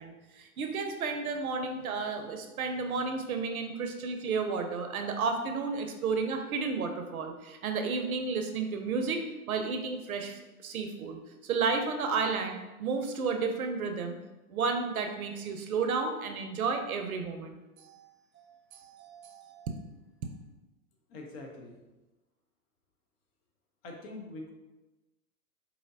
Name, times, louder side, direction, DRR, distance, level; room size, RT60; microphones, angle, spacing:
voice 1, 0.0-9.2 9.5-14.2 14.5-18.0 18.7-19.7, right 4 dB, 70° right, 5 dB, 0.6 m, -32 dB
voice 2, 21.1-21.8 23.8-24.5, left 2 dB, 40° left, 1 dB, 0.8 m, -43 dB
4.8 x 2.9 x 2.6 m, 1.1 s
hypercardioid pair, 115°, 45 cm